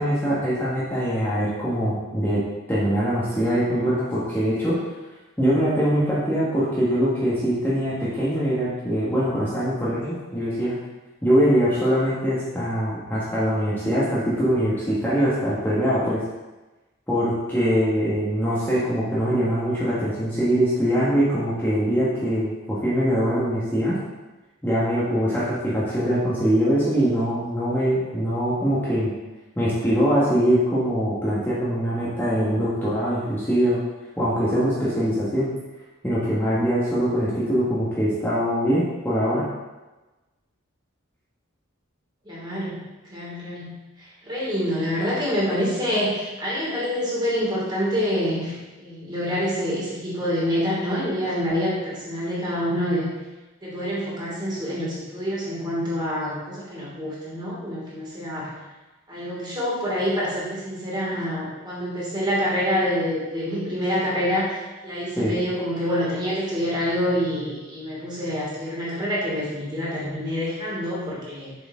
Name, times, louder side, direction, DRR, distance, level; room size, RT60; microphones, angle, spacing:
voice 1, 0.0-2.4 2.7-4.7 5.4-10.8 11.2-16.2 17.1-23.9 24.6-29.1 29.6-33.8 34.2-35.5 36.0-39.5 65.2-65.4, equal, 10° left, -10 dB, 1.5 m, -23 dB
voice 2, 42.2-42.8 43.1-53.1 53.6-58.5 59.1-71.6, equal, 20° right, -6 dB, 2.8 m, -26 dB
7.4 x 6.9 x 3.7 m, 1.1 s
head